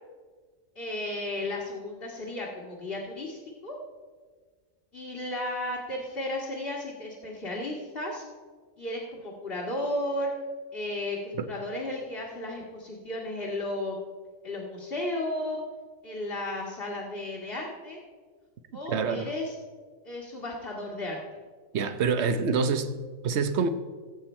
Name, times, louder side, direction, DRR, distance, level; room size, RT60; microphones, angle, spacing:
voice 1, 0.8-3.8 4.9-8.3 8.8-10.3 10.7-14.0 14.4-15.6 16.0-18.0 18.7-19.5 20.0-21.2, left 1 dB, 40° left, -5 dB, 1.9 m, -34 dB
voice 2, 18.9-19.3 21.7-22.9 23.2-23.7, right 5 dB, 55° right, 10 dB, 1.0 m, -26 dB
17.5 x 8.0 x 4.4 m, 1.5 s
omnidirectional pair, 1.5 m